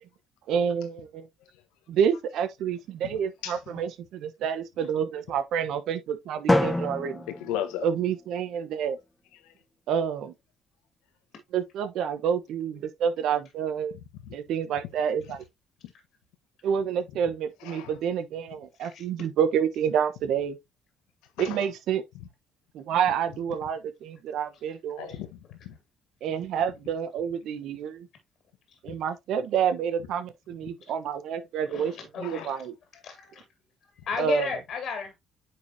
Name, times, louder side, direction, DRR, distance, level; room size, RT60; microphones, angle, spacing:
voice 1, 0.5-1.3 1.9-7.2 7.8-9.0 9.9-10.3 11.5-14.0 14.3-15.4 16.6-20.6 21.4-22.0 22.7-25.2 26.2-28.1 28.8-32.7 34.2-34.5, right 8 dB, 70° right, 1.1 m, -28 dB
Drum, 6.5-8.5, left 1 dB, 10° left, 1.7 m, -27 dB
voice 2, 7.3-7.9 14.2-14.3 17.6-17.9 21.4-21.6 25.0-25.8 32.2-32.6, left 11 dB, 85° left, 1.3 m, -35 dB
voice 3, 18.8-19.3 25.1-25.2 31.7-32.5 33.0-33.4 34.0-35.2, left 6 dB, 65° left, 2.4 m, -34 dB
9.4 x 4.7 x 2.8 m
supercardioid pair, 60°, 0 cm